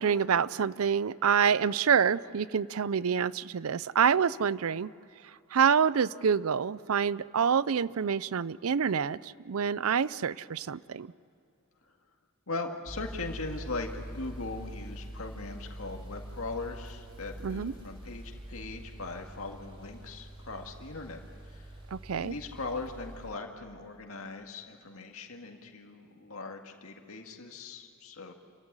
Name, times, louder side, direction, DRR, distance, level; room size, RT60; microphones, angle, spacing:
voice 1, 0.0-4.9 5.5-11.1 17.4-17.7 21.9-22.3, right 7 dB, 85° right, 19 dB, 0.5 m, -27 dB
voice 2, 12.5-21.2 21.4-21.7 22.2-28.3, left 3 dB, 85° left, 3 dB, 2.0 m, -40 dB
sound 1, 12.9-23.3, right 1 dB, 25° right, 3.1 m, -44 dB
28.5 x 15.0 x 9.8 m, 2.6 s
head